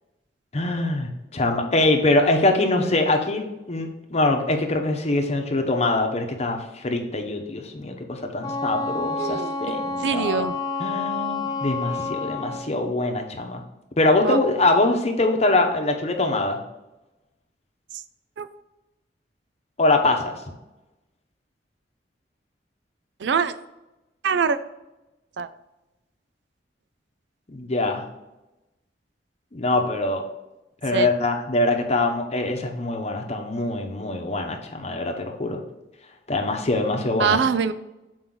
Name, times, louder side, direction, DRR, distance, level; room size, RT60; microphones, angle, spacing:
voice 1, 0.5-10.5 10.8-13.6 14.0-16.6 19.8-20.4 27.5-28.0 29.5-30.2 30.8-35.6 36.3-37.4, left 2 dB, 40° left, 4 dB, 0.9 m, -23 dB
Wind instrument woodwind instrument, 8.4-12.7, left 3 dB, 25° left, 0.7 m, -29 dB
voice 2, 9.2-9.6 10.0-10.5 14.2-14.4 18.4-18.5 23.2-23.5 24.2-24.6 25.4-25.5 30.9-31.1 37.2-37.7, right 6 dB, 80° right, 13 dB, 0.4 m, -23 dB
6.2 x 4.7 x 3.8 m, 0.99 s
head